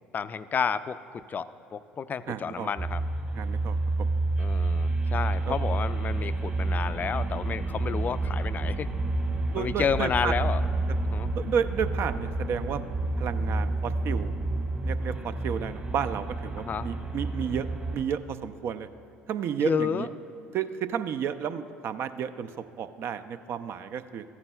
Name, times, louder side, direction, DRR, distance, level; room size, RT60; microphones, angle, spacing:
voice 1, 0.1-1.0 1.3-3.0 4.4-8.9 9.6-10.6 11.0-11.3 16.7-16.9 19.6-20.1, left 6 dB, 35° left, 14 dB, 0.3 m, -30 dB
voice 2, 2.3-2.7 3.3-3.8 5.5-5.6 9.5-10.3 11.3-12.8 13.2-14.3 14.8-18.9 19.3-20.1 20.5-24.2, right 8 dB, 50° right, 11 dB, 0.4 m, -32 dB
sound 1, 2.8-18.0, right 2 dB, 30° right, 1.5 m, -29 dB
14.0 x 9.6 x 2.3 m, 3.0 s
hypercardioid pair, 65°, 5 cm